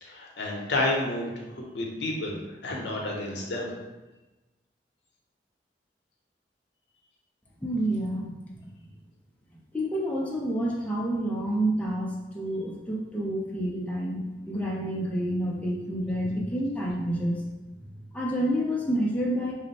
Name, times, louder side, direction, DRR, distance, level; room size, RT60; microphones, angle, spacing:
voice 1, 0.0-2.4 2.6-3.7, left 2 dB, 70° left, -1 dB, 0.7 m, -30 dB
voice 2, 7.6-8.3 9.7-17.4 17.8-17.9 18.1-19.5, right 1 dB, 10° left, -4 dB, 0.4 m, -28 dB
3.1 x 2.0 x 4.0 m, 1.1 s
head